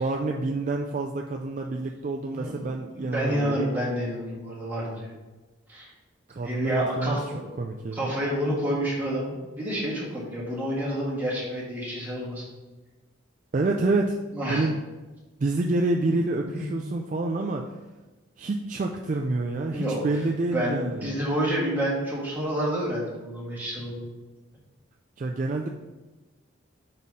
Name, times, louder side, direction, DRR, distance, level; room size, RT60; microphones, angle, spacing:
voice 1, 0.0-3.8 6.3-7.2 7.6-8.1 13.5-14.2 14.5-14.8 15.4-17.7 18.4-21.2 25.2-25.7, right 2 dB, 40° right, 1 dB, 0.3 m, -27 dB
voice 2, 3.0-5.1 5.7-5.9 6.4-7.4 7.9-12.5 14.3-14.7 16.6-16.7 19.7-20.0 20.5-24.1, equal, 10° right, -6 dB, 1.7 m, -29 dB
5.4 x 4.2 x 4.8 m, 1.2 s
head